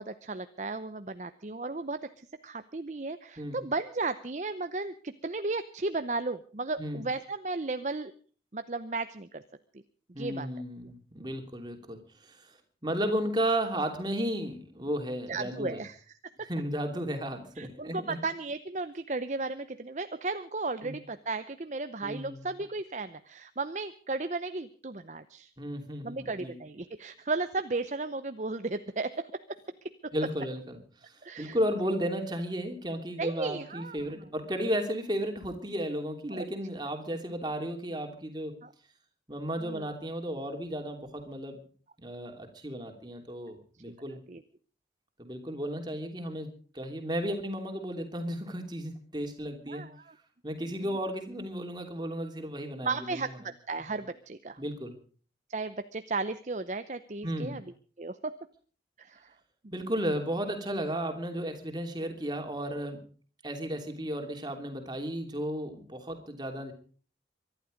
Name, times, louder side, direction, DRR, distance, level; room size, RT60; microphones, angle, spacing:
voice 1, 0.0-8.1 8.5-9.4 9.7-9.8 10.2-10.5 15.3-16.0 16.4-16.5 17.6-25.5 26.0-29.6 30.0-30.1 31.2-31.6 33.2-34.2 36.3-36.5 38.6-38.7 39.6-39.9 44.3-44.4 49.6-50.2 52.8-54.6 55.5-57.6 58.0-58.4 59.0-59.3 59.6-59.9, right 3 dB, 40° right, 11 dB, 0.7 m, -35 dB
voice 2, 10.1-12.6 12.8-15.8 16.4-18.2 20.8-20.9 22.0-22.4 25.6-26.6 30.1-38.6 39.3-41.6 42.0-44.2 45.2-49.9 50.4-53.3 54.6-54.9 57.2-57.6 59.7-63.0 63.4-66.7, equal, 25° right, 4 dB, 3.0 m, -34 dB
24.0 x 11.5 x 5.2 m, 0.43 s
head